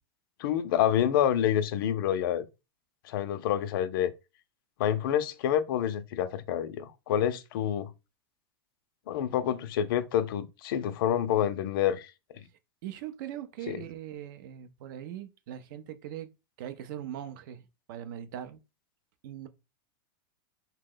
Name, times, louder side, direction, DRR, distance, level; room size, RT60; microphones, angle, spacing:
voice 1, 0.4-2.4 3.1-4.1 4.8-7.9 9.1-12.1 13.7-13.8, left 10 dB, 60° left, 0.4 m, -27 dB
voice 2, 12.8-16.3 16.6-18.6 19.2-19.5, right 11 dB, 55° right, 0.5 m, -41 dB
2.8 x 2.1 x 3.7 m
supercardioid pair, 160°, 13 cm